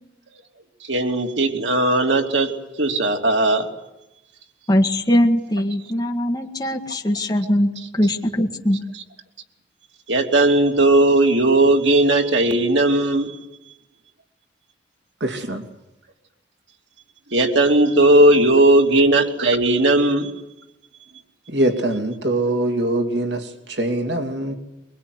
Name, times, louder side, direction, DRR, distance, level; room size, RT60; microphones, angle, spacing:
voice 1, 0.9-2.5 2.8-3.7 10.1-13.3 17.3-20.3, right 2 dB, 85° right, 2 dB, 3.2 m, -17 dB
voice 2, 4.7-8.9, equal, 20° left, 1 dB, 1.9 m, -21 dB
voice 3, 15.2-15.6 21.5-24.5, right 1 dB, 70° right, 5 dB, 2.8 m, -23 dB
23.5 x 22.5 x 9.7 m, 0.92 s
head